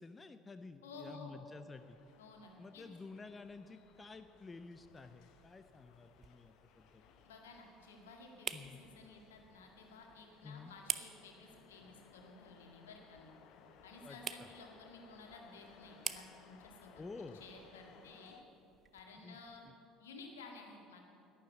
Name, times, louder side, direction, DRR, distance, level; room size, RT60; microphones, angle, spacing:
voice 1, 0.0-2.0 2.6-7.0 8.5-8.8 10.4-10.7 14.0-14.5 17.0-17.4 19.2-19.4 19.6-19.7, left 4 dB, 25° left, 10 dB, 0.6 m, -51 dB
voice 2, 0.8-1.4 2.2-2.9 7.2-13.3 13.8-17.0 17.4-18.4 18.9-19.6 20.0-21.0, left 3 dB, 75° left, 2 dB, 1.9 m, -54 dB
sound 1, 1.7-18.4, left 6 dB, 55° left, 1.0 m, -63 dB
sound 2, 4.9-19.7, right 7 dB, 35° right, 0.7 m, -50 dB
11.5 x 10.5 x 8.4 m, 2.9 s
figure-of-eight pair, 60°, 0 cm